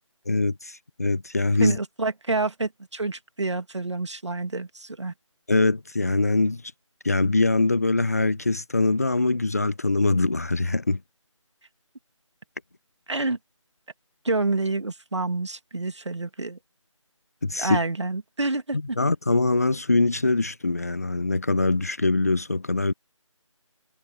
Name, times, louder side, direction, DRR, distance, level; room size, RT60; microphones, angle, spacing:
voice 1, 0.3-1.8 5.5-6.6 7.0-11.0 17.4-17.8 19.0-22.9, left 3 dB, 30° left, 0.7 m, -23 dB
voice 2, 1.6-5.1 13.1-13.4 14.2-16.6 17.6-19.0, right 3 dB, 60° right, 2.0 m, -28 dB
figure-of-eight pair, 170°, 17 cm